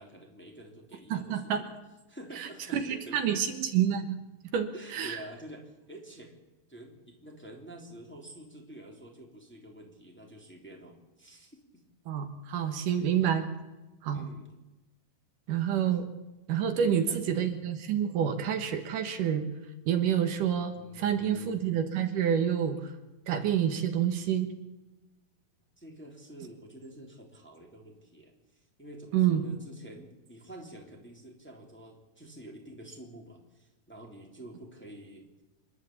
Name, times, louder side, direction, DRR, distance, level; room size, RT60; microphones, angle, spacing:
voice 1, 0.0-1.7 2.1-3.4 4.7-6.4 6.7-11.8 12.9-13.1 14.1-14.5 16.7-17.3 20.6-21.6 25.8-35.3, right 1 dB, 5° left, 0 dB, 2.9 m, -48 dB
voice 2, 1.1-1.6 2.4-4.2 4.5-5.2 12.1-13.5 14.0-14.3 15.5-16.1 16.5-19.5 19.9-22.8 23.3-24.5 29.1-29.4, right 9 dB, 75° right, 7 dB, 2.9 m, -28 dB
27.0 x 11.5 x 8.6 m, 1.1 s
omnidirectional pair, 3.9 m